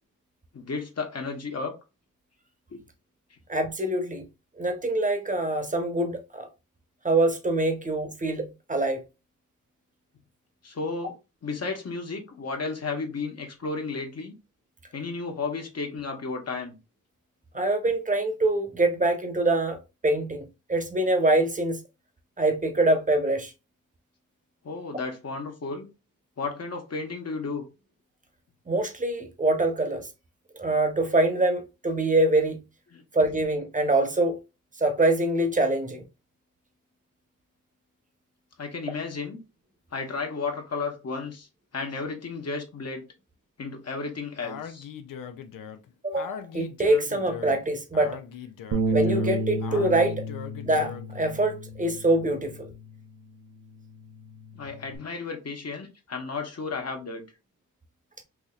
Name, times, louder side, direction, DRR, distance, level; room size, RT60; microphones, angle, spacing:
voice 1, 0.5-1.8 2.7-2.8 10.6-11.1 11.4-14.3 14.9-16.7 24.6-25.9 26.4-27.6 32.9-33.0 38.6-39.4 39.9-41.5 41.7-43.0 43.6-44.9 54.5-57.2, left 4 dB, 50° left, 1.1 m, -33 dB
voice 2, 3.5-4.3 4.6-6.5 7.0-9.0 17.5-19.8 20.0-21.8 22.4-23.5 28.7-30.1 30.5-32.6 33.1-34.4 34.8-36.0 46.0-48.2 48.9-50.2 50.6-52.7, right 2 dB, 25° right, 1.0 m, -24 dB
Speech, 44.4-51.2, left 7 dB, 80° left, 0.6 m, -40 dB
Bass guitar, 48.7-53.2 53.6-55.0, right 1 dB, 60° right, 0.8 m, -32 dB
4.7 x 2.8 x 2.3 m
cardioid pair, 65°, 33 cm